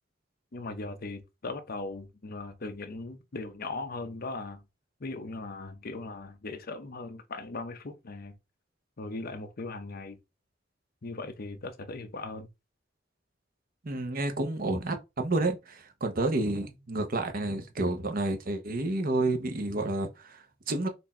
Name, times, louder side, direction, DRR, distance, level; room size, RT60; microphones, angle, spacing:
voice 1, 0.5-4.6 5.0-8.4 9.0-10.2 11.0-12.5, left 3 dB, 50° left, 0.7 m, -39 dB
voice 2, 13.8-20.9, right 2 dB, 50° right, 0.9 m, -30 dB
4.3 x 2.6 x 4.2 m
head